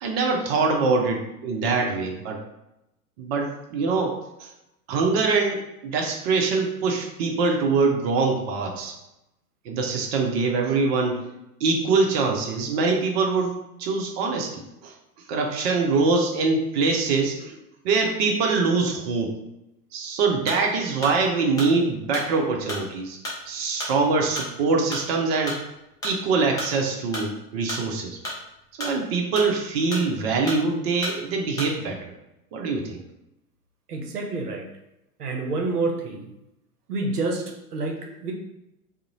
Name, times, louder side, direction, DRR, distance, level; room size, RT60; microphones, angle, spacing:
voice 1, 0.0-2.4 3.2-4.5 4.9-8.9 9.7-11.2 11.6-14.9 15.3-17.6 17.8-19.3 19.9-23.2 23.5-25.6 26.0-28.2 28.8-32.1 32.5-33.0, right 4 dB, 45° right, 1 dB, 0.5 m, -24 dB
sound 1, 20.4-32.0, left 1 dB, 10° left, 0.4 m, -34 dB
voice 2, 33.9-34.7 35.2-36.3 36.9-38.3, right 3 dB, 85° right, 2 dB, 0.6 m, -28 dB
2.4 x 2.0 x 2.9 m, 0.88 s
figure-of-eight pair, 95°, 45 cm